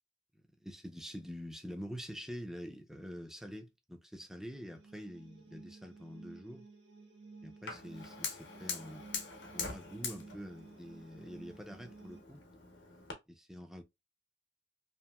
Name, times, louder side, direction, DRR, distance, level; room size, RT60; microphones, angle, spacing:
voice 1, 0.6-6.6 7.4-9.1 9.5-12.4 13.3-13.8, equal, 5° right, 0.4 m, -46 dB
sound 1, 4.3-12.2, right 3 dB, 85° right, 0.9 m, -55 dB
Fire, 7.7-13.1, left 5 dB, 70° left, 0.8 m, -44 dB
2.9 x 2.6 x 2.2 m
head